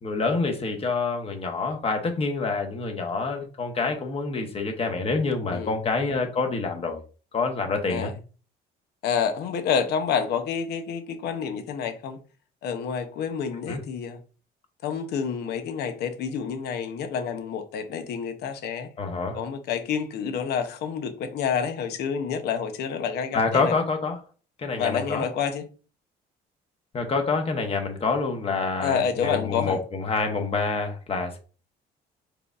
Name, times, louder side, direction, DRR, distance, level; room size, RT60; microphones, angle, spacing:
voice 1, 0.0-7.0 7.3-8.1 13.7-13.8 19.0-19.4 23.3-24.2 24.6-25.3 26.9-31.4, left 4 dB, 35° left, 1.0 m, -27 dB
voice 2, 9.0-12.2 12.6-14.2 14.8-18.9 19.3-23.7 24.7-25.6 28.8-29.8, left 7 dB, 75° left, 0.8 m, -28 dB
4.8 x 3.4 x 2.4 m
cardioid pair, 110°, 17 cm